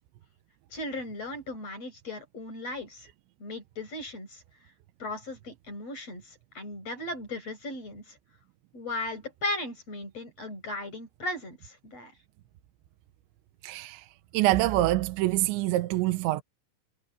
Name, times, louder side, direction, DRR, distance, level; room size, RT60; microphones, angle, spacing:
voice 1, 0.7-3.1 3.4-4.4 5.0-8.2 8.7-12.1, left 2 dB, 35° left, 8.3 m, -37 dB
voice 2, 13.6-14.1 14.3-16.4, right 16 dB, 85° right, 3.2 m, -25 dB
omnidirectional pair, 5.1 m